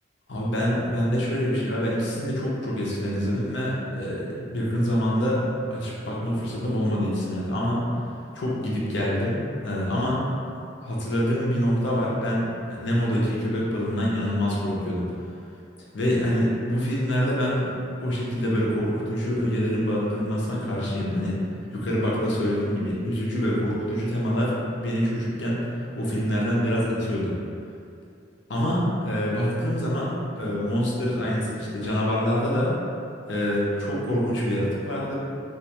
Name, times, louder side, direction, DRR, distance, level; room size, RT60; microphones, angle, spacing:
voice 1, 0.3-7.8 8.3-9.4 9.6-10.2 10.8-15.1 15.9-17.7 18.0-21.3 21.7-27.4 28.5-32.8 33.3-35.1, equal, 60° left, -5 dB, 0.5 m, -25 dB
2.3 x 2.2 x 2.8 m, 2.5 s
head